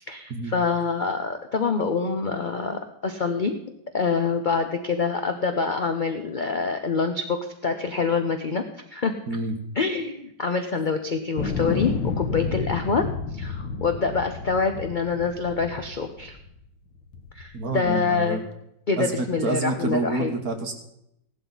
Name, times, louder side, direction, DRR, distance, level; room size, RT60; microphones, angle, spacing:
voice 1, 0.0-3.6 3.9-9.1 9.7-13.1 13.3-16.4 17.3-18.4 18.9-20.3, left 4 dB, 50° left, 6 dB, 0.6 m, -26 dB
sound 1, 11.4-16.6 17.1-17.9, left 4 dB, 90° left, 1.9 m, -31 dB
voice 2, 17.5-18.4 19.0-20.7, right 2 dB, 60° right, 4 dB, 1.8 m, -28 dB
16.5 x 11.5 x 4.0 m, 0.78 s
omnidirectional pair, 2.0 m